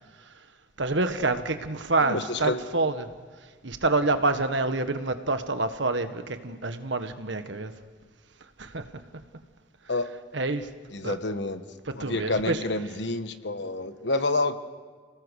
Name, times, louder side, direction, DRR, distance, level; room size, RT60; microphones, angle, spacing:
voice 1, 0.8-3.1 3.6-7.7 8.6-8.9 10.3-10.7 11.0-11.2 11.9-12.6, right 3 dB, 70° right, 9 dB, 1.5 m, -27 dB
voice 2, 2.0-2.6 9.9-10.1 10.9-11.6 11.9-14.6, left 2 dB, 65° left, 10 dB, 1.3 m, -28 dB
29.0 x 19.0 x 6.5 m, 1.5 s
head